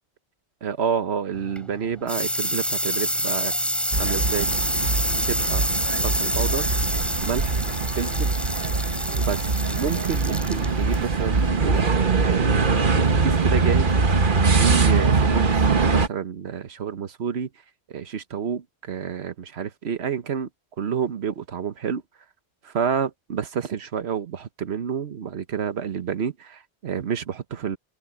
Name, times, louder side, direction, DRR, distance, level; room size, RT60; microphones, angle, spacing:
voice 1, 0.6-3.5 4.0-4.5 5.1-5.7 5.9-6.7 7.2-7.7 8.0-8.3 9.2-12.5 12.9-13.9 14.6-17.5 17.9-20.5 20.8-22.0 22.6-27.8, right 7 dB, 90° right, 1.3 m, -29 dB
sound 1, 1.4-12.6, equal, ahead, 3.2 m, -28 dB
sound 2, 3.9-16.1, right 4 dB, 55° right, 1.5 m, -22 dB
open air
omnidirectional pair, 1.1 m